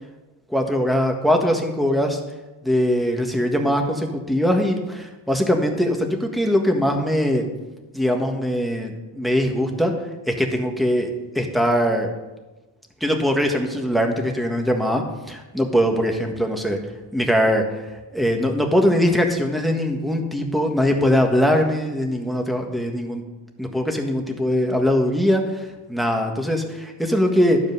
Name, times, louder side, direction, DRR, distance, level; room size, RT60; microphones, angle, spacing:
voice 1, 0.5-2.2 2.6-7.4 7.9-9.9 10.3-11.1 11.3-12.1 13.0-16.8 17.1-17.6 18.1-23.2 23.6-27.6, equal, ahead, 2 dB, 1.5 m, -21 dB
12.0 x 5.2 x 6.8 m, 1.1 s
wide cardioid pair, 95°, 45 cm